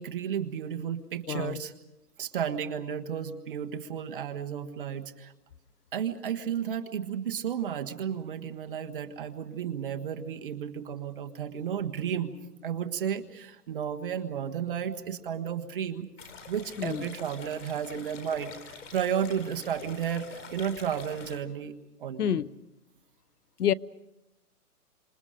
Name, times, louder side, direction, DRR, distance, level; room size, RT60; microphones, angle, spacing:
voice 1, 0.0-1.7 2.2-5.3 5.9-12.3 12.6-16.1 16.5-18.6 18.9-22.4, right 8 dB, 35° right, 1.5 m, -33 dB
voice 2, 1.3-1.6 16.8-17.1 22.2-22.5 23.6-23.7, left 10 dB, 75° left, 0.8 m, -28 dB
sound 1, 16.2-21.4, left 5 dB, 50° left, 3.9 m, -46 dB
30.0 x 27.0 x 5.1 m
hypercardioid pair, 160°, 46 cm